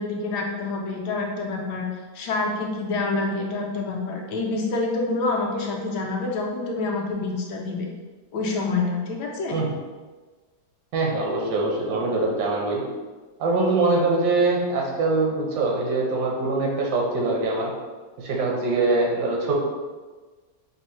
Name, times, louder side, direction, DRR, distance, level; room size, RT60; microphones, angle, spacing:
voice 1, 0.0-1.9 2.1-7.9 8.3-9.5, left 3 dB, 75° left, -1 dB, 1.2 m, -27 dB
voice 2, 10.9-12.8 13.4-17.7 18.2-19.5, right 3 dB, 75° right, -1 dB, 1.3 m, -23 dB
5.2 x 2.0 x 3.0 m, 1.3 s
omnidirectional pair, 1.9 m